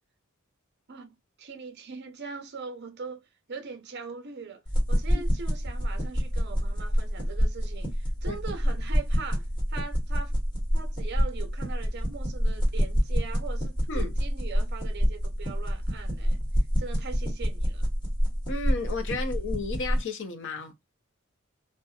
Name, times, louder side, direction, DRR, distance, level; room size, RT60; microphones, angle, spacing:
voice 1, 0.9-4.6 4.9-10.4 10.7-16.4 16.8-17.9 19.1-19.3, right 4 dB, 55° right, 0.7 m, -41 dB
sound 1, 4.6-20.0, equal, 25° left, 1.1 m, -27 dB
voice 2, 18.5-20.7, left 3 dB, 65° left, 0.7 m, -33 dB
2.7 x 2.1 x 2.3 m
head